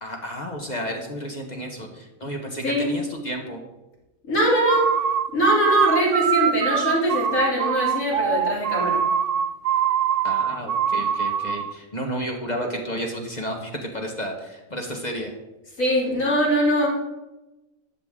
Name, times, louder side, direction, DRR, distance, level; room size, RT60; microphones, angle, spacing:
voice 1, 0.0-3.6 10.2-15.3, equal, 35° left, 1 dB, 1.3 m, -32 dB
voice 2, 4.2-4.9 5.3-9.0 15.8-16.9, equal, 75° left, -5 dB, 3.7 m, -22 dB
sound 1, 4.5-11.7, right 8 dB, 65° right, 0.5 m, -23 dB
12.5 x 8.0 x 3.7 m, 1.0 s
omnidirectional pair, 1.4 m